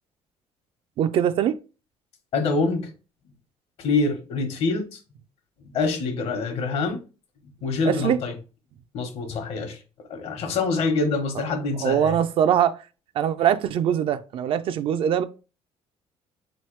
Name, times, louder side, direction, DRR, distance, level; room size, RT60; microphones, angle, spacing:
voice 1, 1.0-1.5 7.9-8.2 11.8-12.8 13.2-15.2, right 9 dB, 55° right, 0.4 m, -22 dB
voice 2, 2.3-2.9 3.8-4.9 5.7-7.0 7.6-8.3 8.9-9.8 10.1-12.2, left 3 dB, 65° left, 1.0 m, -25 dB
3.9 x 3.1 x 3.1 m
cardioid pair, 145°, 11 cm